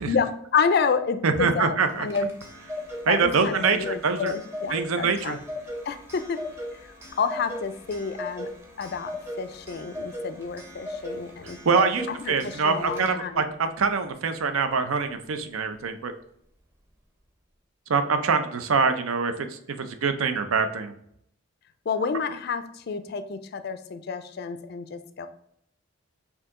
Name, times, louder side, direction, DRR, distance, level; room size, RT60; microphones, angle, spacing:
voice 1, 0.1-2.3 3.1-5.4 5.9-6.4 6.8-8.5 8.8-11.6 12.1-13.4 21.9-25.3, left 5 dB, 50° left, 10 dB, 0.4 m, -29 dB
voice 2, 1.2-2.1 3.1-4.3 4.7-5.4 11.7-16.1 17.9-20.9, right 5 dB, 85° right, 9 dB, 0.5 m, -24 dB
Clock, 1.9-13.5, left 1 dB, 10° right, 0.6 m, -38 dB
4.6 x 2.8 x 3.6 m, 0.70 s
head